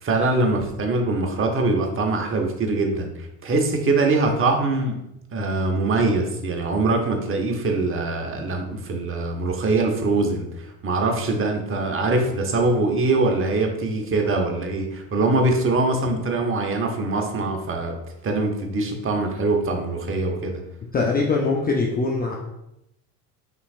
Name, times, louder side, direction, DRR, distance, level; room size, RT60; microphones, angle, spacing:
voice 1, 0.0-5.0 5.3-18.0 18.2-20.6, right 2 dB, 25° right, 3 dB, 0.9 m, -23 dB
voice 2, 20.9-22.3, left 3 dB, 20° left, -1 dB, 0.6 m, -22 dB
5.7 x 3.1 x 2.4 m, 0.85 s
hypercardioid pair, 85°, 47 cm